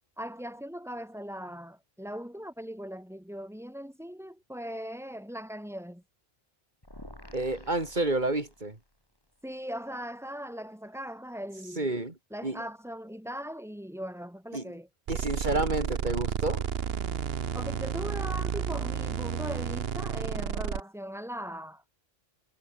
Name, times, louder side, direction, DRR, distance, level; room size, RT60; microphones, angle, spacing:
voice 1, 0.2-6.0 9.4-11.9 12.3-14.9 17.5-21.8, equal, 5° right, 2.0 m, -39 dB
sound 1, 6.8-8.9, left 1 dB, 20° left, 5.1 m, -49 dB
voice 2, 7.3-8.8 11.8-12.1 12.4-12.6 14.5-14.6 15.1-16.6, right 2 dB, 50° right, 3.4 m, -29 dB
sound 2, 15.1-20.8, right 7 dB, 75° right, 1.2 m, -31 dB
omnidirectional pair, 1.0 m